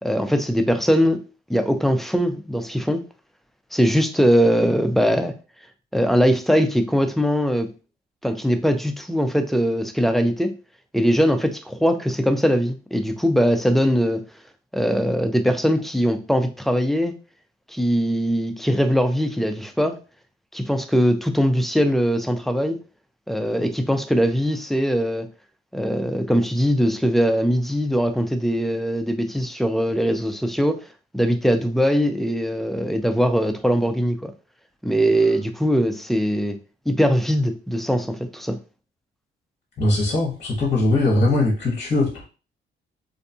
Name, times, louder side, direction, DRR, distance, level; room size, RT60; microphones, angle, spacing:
voice 1, 0.0-3.0 3.7-5.3 5.9-7.7 8.2-10.5 10.9-14.2 14.7-17.1 17.7-20.0 20.5-22.8 23.3-25.3 25.7-30.8 31.1-34.3 34.8-36.6 36.9-38.6, equal, ahead, 0.4 m, -21 dB
voice 2, 39.8-42.2, left 2 dB, 35° left, 0.9 m, -20 dB
2.6 x 2.2 x 2.6 m
cardioid pair, 90°, 20 cm